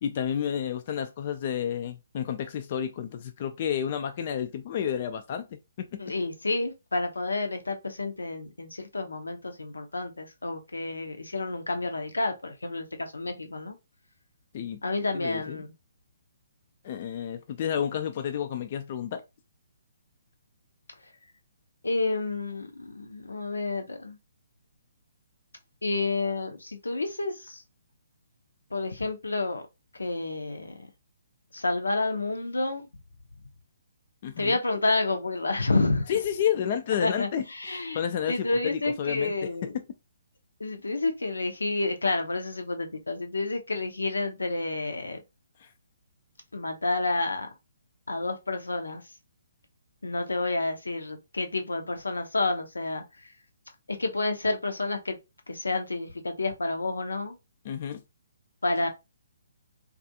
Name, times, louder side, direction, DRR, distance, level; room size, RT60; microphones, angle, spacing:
voice 1, 0.0-5.5 5.8-6.0 14.5-14.8 15.1-15.6 16.8-19.2 34.2-34.6 36.1-37.4 37.9-39.3 45.6-45.7 57.6-58.0, left 9 dB, 45° left, 0.3 m, -30 dB
voice 2, 6.0-13.8 14.8-15.7 21.8-24.2 25.8-27.6 28.7-29.6 29.9-30.9 31.5-32.9 34.4-36.1 37.0-38.0 38.3-39.7 40.6-45.2 46.5-47.5 48.1-49.0 50.0-53.3 53.9-55.2 55.5-57.4 58.6-58.9, left 2 dB, 85° left, 0.6 m, -29 dB
2.4 x 2.4 x 2.7 m
figure-of-eight pair, 140°, 0 cm